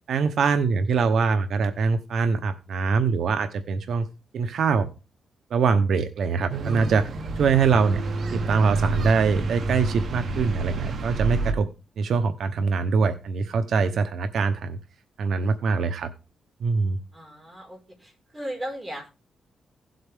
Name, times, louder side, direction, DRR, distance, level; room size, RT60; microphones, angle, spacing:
voice 1, 0.1-4.1 4.3-4.9 5.5-7.1 7.4-8.0 8.3-11.7 12.0-14.8 15.2-16.1 16.6-17.0, right 5 dB, 75° right, 9 dB, 0.9 m, -23 dB
sound 1, 6.5-11.5, right 3 dB, 55° right, 1.3 m, -28 dB
voice 2, 17.1-19.1, equal, 20° right, 0 dB, 5.0 m, -36 dB
16.5 x 7.8 x 3.6 m, 0.32 s
cardioid pair, 115°, 0 cm